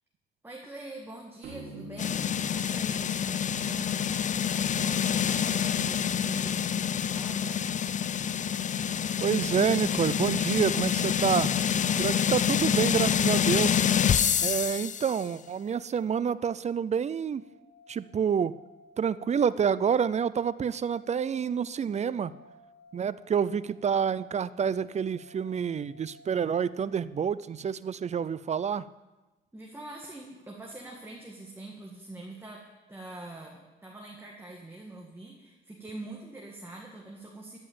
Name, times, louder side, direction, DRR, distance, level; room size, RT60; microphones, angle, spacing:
voice 1, 0.4-7.7 29.5-37.6, right 2 dB, 10° right, -2 dB, 1.7 m, -44 dB
sound 1, 1.4-4.9, right 2 dB, 85° right, 3.8 m, -47 dB
sound 2, 2.0-15.2, left 8 dB, 40° left, 0.4 m, -27 dB
sound 3, 7.4-27.1, equal, 15° left, 3.1 m, -58 dB
voice 2, 9.2-11.6 12.0-13.9 14.4-17.4 17.9-18.5 19.0-22.3 22.9-28.9, right 7 dB, 35° right, 17 dB, 0.4 m, -28 dB
13.5 x 5.4 x 8.8 m, 1.1 s
cardioid pair, 90°, 20 cm